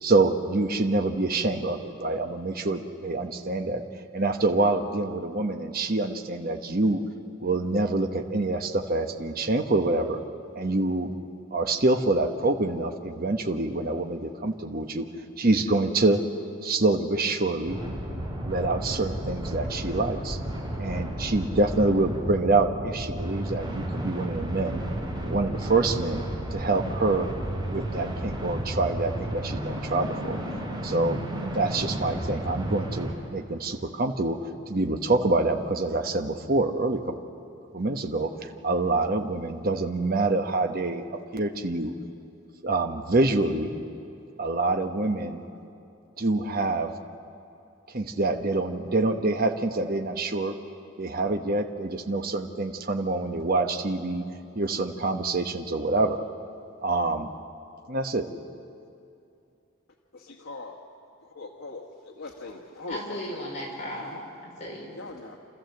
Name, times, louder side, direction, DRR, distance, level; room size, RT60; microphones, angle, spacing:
voice 1, 0.0-3.8 4.1-7.0 7.4-10.2 10.5-11.1 11.5-15.1 15.4-16.2 16.6-17.8 18.4-20.4 20.8-24.8 25.2-26.2 26.5-27.3 27.7-30.4 30.8-31.2 31.5-37.1 37.7-41.9 42.6-43.7 44.4-45.4 46.2-46.9 47.9-50.5 51.0-54.2 54.5-56.2 56.8-57.3 57.9-58.2, right 2 dB, 45° right, 5 dB, 1.1 m, -26 dB
sound 1, 17.7-33.1, right 1 dB, 20° right, 3.4 m, -33 dB
voice 2, 60.1-60.8 61.2-63.5 64.0-64.2 64.9-65.4, left 2 dB, 85° left, 0 dB, 1.5 m, -41 dB
voice 3, 62.9-65.0, equal, 35° left, -3 dB, 5.1 m, -36 dB
28.5 x 14.0 x 7.9 m, 2.6 s
head